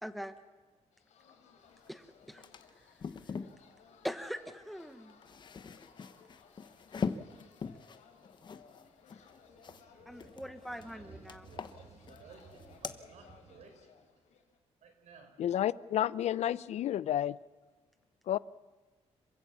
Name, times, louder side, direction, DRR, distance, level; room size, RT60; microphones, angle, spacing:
voice 1, 0.0-0.4 1.9-2.4 2.7-2.9 3.2-3.3 4.0-5.2 10.1-11.5, equal, ahead, 10 dB, 1.2 m, -42 dB
sound 1, 0.9-14.6, left 6 dB, 90° left, 3.9 m, -61 dB
sound 2, 1.9-2.0 2.2-3.6 4.9-9.8 10.2-10.9 11.3-12.2 12.5-13.0, left 5 dB, 40° left, 1.1 m, -42 dB
sound 3, 6.1-6.3 7.0-7.2 9.3-13.7, right 4 dB, 55° right, 3.6 m, -57 dB
voice 2, 10.8-11.1 11.5-13.8 14.8-15.4, right 6 dB, 85° right, 7 dB, 4.4 m, -58 dB
voice 3, 15.4-17.4 18.3-18.4, left 11 dB, 75° left, 19 dB, 0.6 m, -30 dB
27.0 x 16.0 x 7.2 m, 1.4 s
cardioid pair, 140°, 12 cm